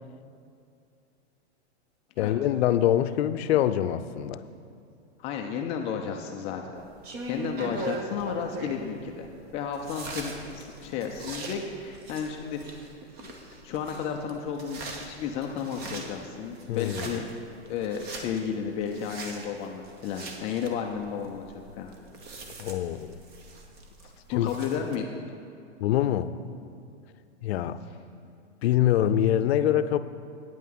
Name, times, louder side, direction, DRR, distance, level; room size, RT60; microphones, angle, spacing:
voice 1, 2.2-4.4 16.7-17.2 22.6-23.2 24.3-24.5 25.8-26.3 27.4-27.8 28.6-30.0, left 11 dB, 65° left, 12 dB, 0.6 m, -24 dB
voice 2, 5.2-6.7 7.3-12.9 13.2-13.4 13.6-17.3 17.6-21.9 24.0-25.1, left 7 dB, 20° left, 3 dB, 0.3 m, -33 dB
sound 1, 6.7-25.0, right 2 dB, 30° right, 1.1 m, -41 dB
9.3 x 5.5 x 7.7 m, 2.5 s
hypercardioid pair, 140°, 34 cm